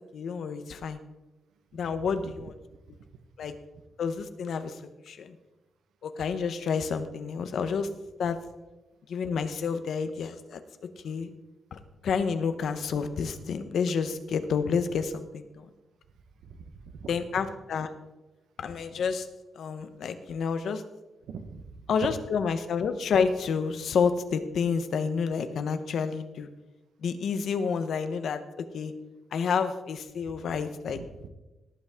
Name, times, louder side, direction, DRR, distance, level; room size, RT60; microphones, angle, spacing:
voice 1, 0.1-1.0 1.7-2.5 3.4-3.6 4.0-4.8 5.1-5.4 6.0-7.9 8.2-8.4 9.1-10.6 11.0-11.3 11.7-15.7 17.1-17.9 18.6-19.3 19.5-20.8 21.9-26.5 27.0-28.9 29.3-31.0, left 6 dB, 60° left, 10 dB, 0.9 m, -29 dB
voice 2, 16.4-17.1 21.3-22.1 31.0-31.3, right 6 dB, 85° right, 9 dB, 1.0 m, -41 dB
18.0 x 8.2 x 3.7 m, 1.0 s
wide cardioid pair, 170°, 0 cm